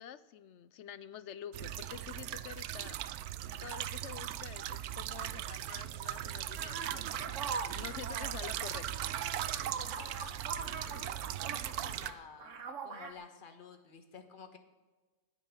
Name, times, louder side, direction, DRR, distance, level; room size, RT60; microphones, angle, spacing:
voice 1, 0.0-3.0 3.6-9.1, left 10 dB, 65° left, 16 dB, 0.7 m, -48 dB
sound 1, 1.5-12.1, right 12 dB, 85° right, 1.1 m, -39 dB
sound 2, 6.6-12.1 12.4-13.1, right 5 dB, 60° right, 1.5 m, -42 dB
voice 2, 9.9-14.6, left 5 dB, 35° left, 7 dB, 1.4 m, -52 dB
10.0 x 9.3 x 9.6 m, 1.2 s
omnidirectional pair, 1.5 m